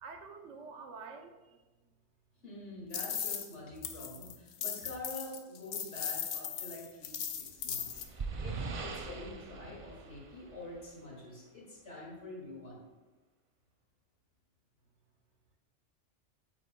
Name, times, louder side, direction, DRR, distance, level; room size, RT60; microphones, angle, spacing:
voice 1, 0.0-1.6, right 4 dB, 70° right, 5 dB, 1.1 m, -48 dB
voice 2, 2.4-12.8, left 2 dB, 65° left, -4 dB, 2.6 m, -46 dB
sound 1, 2.9-3.5 3.8-8.0, left 8 dB, 85° left, 1.1 m, -38 dB
sound 2, 7.4-11.0, right 4 dB, 50° right, 0.4 m, -41 dB
9.1 x 8.8 x 2.2 m, 1.2 s
omnidirectional pair, 1.3 m